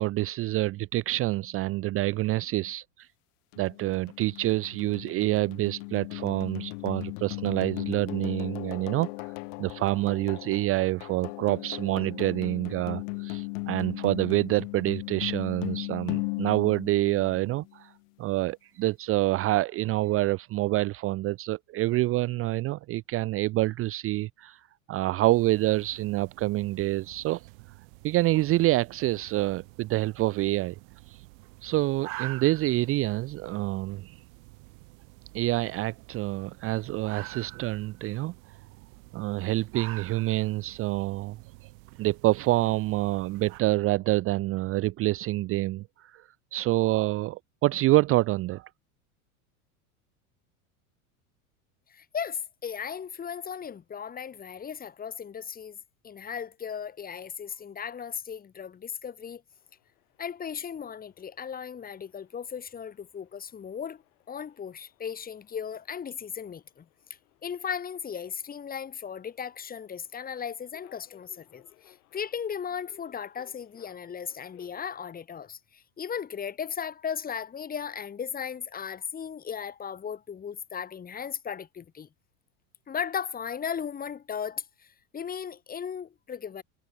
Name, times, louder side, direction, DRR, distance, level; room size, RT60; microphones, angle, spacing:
voice 1, 0.0-3.1 3.6-9.3 9.6-17.9 18.2-27.4 28.0-30.8 31.1-31.2 31.6-34.1 35.3-38.3 39.1-41.4 42.0-48.7, right 17 dB, 30° right, 0.5 m, -27 dB
sound 1, 3.5-17.7, left 34 dB, 60° left, 0.9 m, -37 dB
sound 2, 25.3-43.6, right 27 dB, 65° right, 7.7 m, -47 dB
voice 2, 51.9-55.8 56.0-59.4 60.2-64.0 64.3-66.8 67.4-82.1 82.9-86.6, left 7 dB, 20° left, 1.7 m, -36 dB
sound 3, 59.5-75.0, left 19 dB, 75° left, 7.7 m, -63 dB
supercardioid pair, 130°, 43 cm